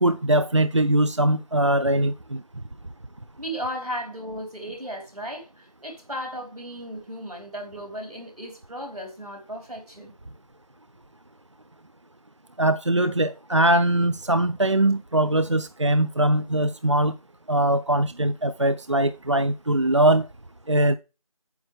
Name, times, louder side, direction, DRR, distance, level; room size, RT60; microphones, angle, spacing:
voice 1, 0.0-2.4 12.6-17.1 17.5-20.3 20.7-21.0, right 1 dB, 50° right, 0.5 m, -21 dB
voice 2, 3.4-10.1, equal, 85° right, 4.3 m, -35 dB
9.3 x 7.1 x 3.5 m
figure-of-eight pair, 175°, 19 cm